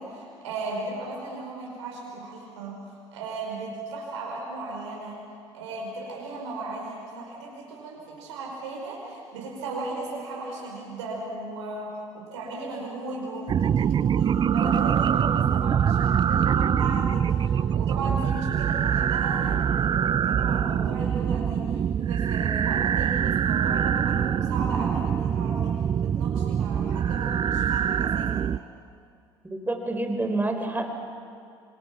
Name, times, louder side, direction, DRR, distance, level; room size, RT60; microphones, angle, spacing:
voice 1, 0.0-5.2 5.5-25.7 26.0-28.5, right 2 dB, 75° right, -2 dB, 5.3 m, -36 dB
sound 1, 13.5-28.6, right 8 dB, 30° right, 0.5 m, -24 dB
voice 2, 29.5-31.0, right 2 dB, 10° right, 5 dB, 4.1 m, -28 dB
27.0 x 24.5 x 5.9 m, 2.3 s
figure-of-eight pair, 60°, 15 cm